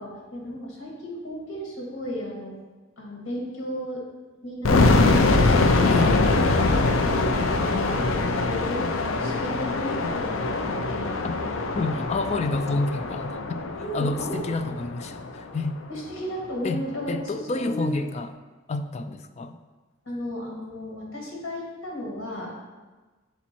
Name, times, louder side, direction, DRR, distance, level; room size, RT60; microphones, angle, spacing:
voice 1, 0.0-2.5 3.0-4.0 6.6-11.1 13.8-14.4 15.9-18.0 20.1-22.5, equal, 65° left, -3 dB, 2.1 m, -35 dB
sound 1, 4.6-15.5, left 3 dB, 80° left, 0.6 m, -23 dB
voice 2, 5.9-6.3 11.2-11.3 11.7-13.6 13.9-15.8 16.6-16.8 17.1-18.3 18.7-19.5, left 3 dB, 35° left, 9 dB, 0.3 m, -29 dB
7.0 x 4.3 x 4.4 m, 1.3 s
head